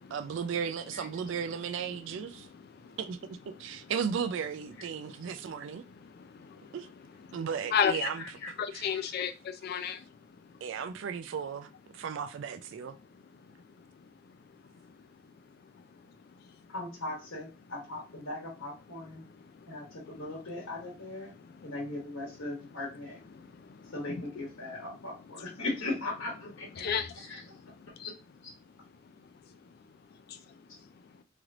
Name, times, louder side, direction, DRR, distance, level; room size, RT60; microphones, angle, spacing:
voice 1, 0.1-2.5 3.0-5.8 6.7-6.9 7.3-8.2 8.7-9.0 10.6-13.0, right 7 dB, 65° right, 0.3 m, -35 dB
voice 2, 6.0-6.8 7.3-7.4 7.7-8.1 8.6-10.1 10.5-10.6 13.6-14.4 15.0-15.3 15.6-15.9 16.3-16.4 19.2-19.8 21.4-21.7 23.4-24.2 26.8-28.1 29.2-29.7 30.3-30.5 30.8-30.9, left 7 dB, 50° left, 0.3 m, -36 dB
voice 3, 8.2-8.5 16.7-19.2 19.7-21.3 21.6-23.2 23.9-26.8 27.1-27.4 28.4-28.5, left 2 dB, 85° left, 1.3 m, -38 dB
3.2 x 2.9 x 2.4 m
head